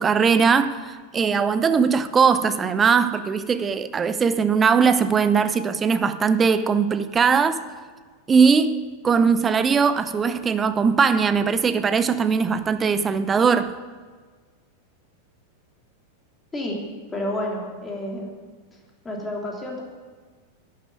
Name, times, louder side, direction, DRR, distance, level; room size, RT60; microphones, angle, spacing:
voice 1, 0.0-7.6 8.3-8.8 9.0-13.7, right 5 dB, 20° right, 0.7 m, -20 dB
voice 2, 17.1-18.3 19.0-19.8, left 1 dB, 15° left, 3.1 m, -29 dB
11.5 x 8.6 x 9.0 m
figure-of-eight pair, 90°, 0 cm